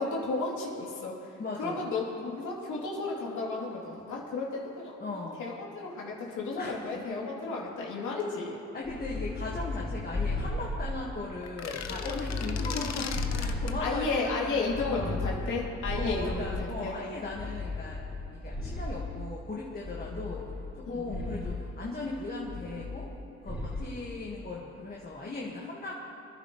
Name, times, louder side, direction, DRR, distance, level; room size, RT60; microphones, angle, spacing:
voice 1, 0.0-1.3 1.6-8.6 13.8-16.9 20.1-20.3 20.8-21.5, left 3 dB, 75° left, -4 dB, 3.0 m, -33 dB
voice 2, 1.4-1.9 5.0-5.4 6.6-7.0 8.7-13.1 13.4-15.2 15.9-18.0 18.3-20.5 20.7-23.1 23.4-26.0, left 3 dB, 30° left, -3 dB, 1.7 m, -38 dB
sound 1, 8.8-11.3 11.8-14.2 14.7-16.8 17.3-19.2 19.8-20.8 21.1-21.6 22.5-23.2 23.5-23.9, left 2 dB, 5° right, 2.3 m, -35 dB
sound 2, 11.4-13.8, left 7 dB, 60° left, 1.0 m, -37 dB
24.5 x 11.0 x 3.1 m, 2.8 s
cardioid pair, 90°, 30 cm